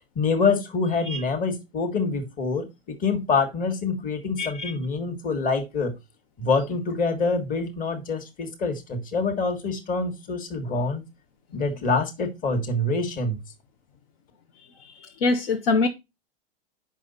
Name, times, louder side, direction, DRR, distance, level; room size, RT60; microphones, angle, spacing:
voice 1, 0.1-5.9 6.4-11.0 11.5-13.4, left 4 dB, 30° left, 1.6 m, -26 dB
voice 2, 4.4-4.7 15.2-15.9, left 3 dB, 75° left, 1.3 m, -23 dB
7.1 x 5.8 x 4.0 m
hypercardioid pair, 120°, 29 cm